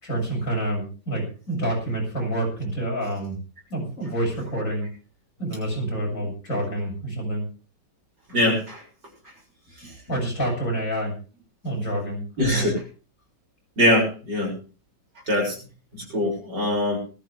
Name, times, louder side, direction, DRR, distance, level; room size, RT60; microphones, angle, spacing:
voice 1, 0.0-3.4 3.7-4.9 5.4-7.4 9.8-11.1 11.6-12.7, right 1 dB, 40° left, -1 dB, 7.6 m, -28 dB
voice 2, 8.3-8.8 12.4-12.8 13.8-14.5 15.3-15.6 15.9-17.0, left 1 dB, 60° right, 0 dB, 7.3 m, -22 dB
19.5 x 14.0 x 3.4 m, 0.35 s
omnidirectional pair, 2.1 m